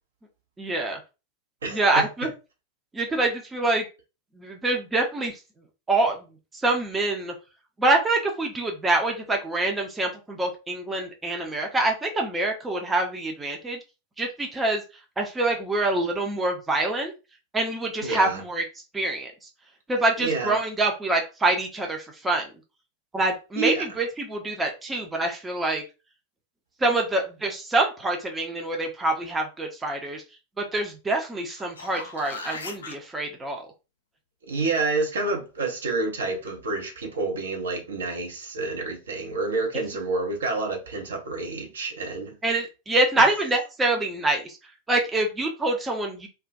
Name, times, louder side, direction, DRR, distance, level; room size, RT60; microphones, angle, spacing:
voice 1, 0.6-1.0 1.7-2.3 2.9-3.8 4.4-5.3 5.9-6.2 6.6-7.3 7.8-13.8 14.2-14.8 15.2-17.1 17.5-18.6 18.9-19.3 19.9-22.5 23.1-25.8 26.8-30.2 30.6-33.7 39.7-39.8 42.4-44.6 44.9-46.3, right 2 dB, 15° right, 0.5 m, -25 dB
voice 2, 1.6-2.1 18.0-18.4 20.2-20.6 23.6-23.8 34.5-42.4, right 3 dB, 65° right, 0.7 m, -28 dB
sound 1, 31.5-33.0 37.7-37.8, left 3 dB, 65° left, 0.4 m, -38 dB
2.2 x 2.1 x 2.5 m
figure-of-eight pair, 90°, 0 cm